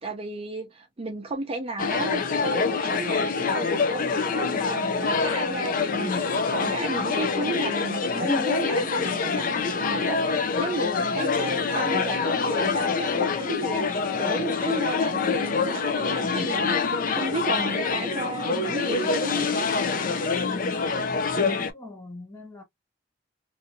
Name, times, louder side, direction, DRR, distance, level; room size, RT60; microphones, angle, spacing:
voice 1, 0.0-19.7, right 2 dB, 30° right, 0.6 m, -34 dB
sound 1, 1.8-21.7, left 4 dB, 45° left, 0.5 m, -26 dB
voice 2, 21.5-22.6, left 2 dB, 15° left, 1.1 m, -43 dB
2.7 x 2.7 x 2.6 m
head